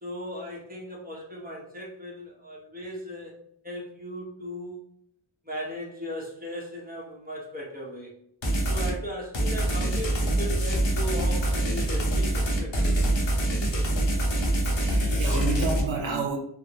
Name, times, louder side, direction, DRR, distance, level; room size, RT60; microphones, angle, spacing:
voice 1, 0.0-3.3 3.6-4.8 5.4-8.1 8.7-13.2, equal, 20° right, 1.0 m, -37 dB
sound 1, 8.4-9.0 9.3-15.8, right 1 dB, 70° left, 0.9 m, -25 dB
voice 2, 14.6-16.4, right 4 dB, 75° right, 0.6 m, -30 dB
3.5 x 2.1 x 2.8 m
wide cardioid pair, 75°, 48 cm